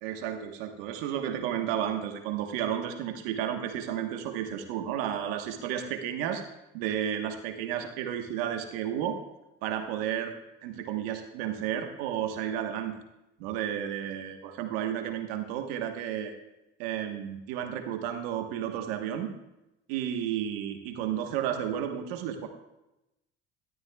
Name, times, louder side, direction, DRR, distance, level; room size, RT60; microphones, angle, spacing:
voice 1, 0.0-6.4 6.7-9.2 9.6-10.3 10.6-13.0 13.4-16.3 16.8-19.3 19.9-22.5, right 10 dB, 85° right, 5 dB, 1.3 m, -32 dB
13.0 x 12.5 x 2.3 m, 0.91 s
supercardioid pair, 80°, 29 cm